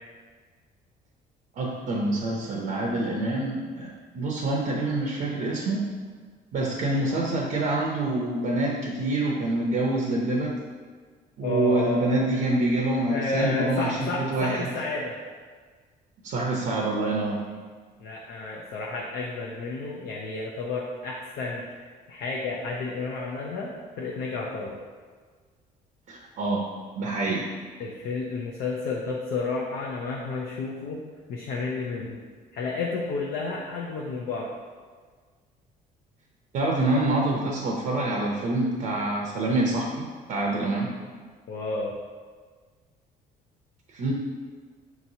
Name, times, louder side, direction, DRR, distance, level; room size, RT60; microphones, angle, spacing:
voice 1, 1.6-5.9 6.5-10.6 11.4-14.7 16.2-17.4 26.1-26.6 27.0-27.5 36.5-40.9 43.9-44.1, right 2 dB, 55° right, -2 dB, 0.7 m, -26 dB
voice 2, 11.4-12.1 13.1-15.2 18.0-21.8 22.1-23.7 24.0-24.8 27.8-31.0 31.3-32.2 32.5-34.5 41.5-42.0, left 3 dB, 70° left, -2 dB, 0.6 m, -31 dB
5.8 x 3.0 x 2.7 m, 1.5 s
cardioid pair, 110°, 17 cm